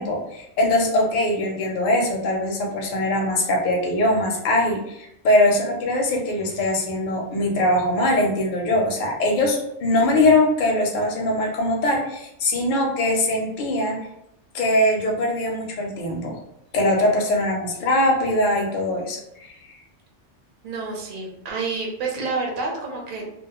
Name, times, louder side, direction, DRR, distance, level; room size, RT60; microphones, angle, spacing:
voice 1, 0.0-14.0 14.5-16.4 16.7-19.5, left 1 dB, 55° left, 0 dB, 0.6 m, -22 dB
voice 2, 20.6-23.2, right 3 dB, 55° right, 0 dB, 0.7 m, -29 dB
2.2 x 2.0 x 2.9 m, 0.78 s
omnidirectional pair, 1.2 m